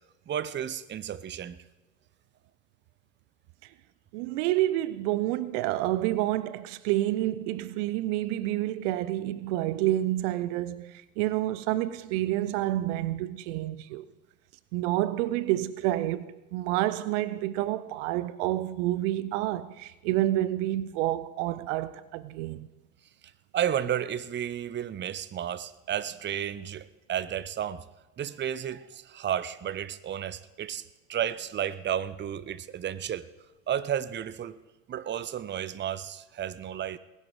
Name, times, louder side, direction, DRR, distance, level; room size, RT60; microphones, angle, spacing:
voice 1, 0.3-1.6 23.5-27.8 28.2-30.8 31.1-33.3 33.7-34.6 34.9-37.0, right 10 dB, 30° right, 0.7 m, -32 dB
voice 2, 4.1-14.1 14.7-22.7, right 15 dB, 65° right, 0.7 m, -29 dB
19.5 x 11.0 x 4.8 m
hypercardioid pair, 70°, 39 cm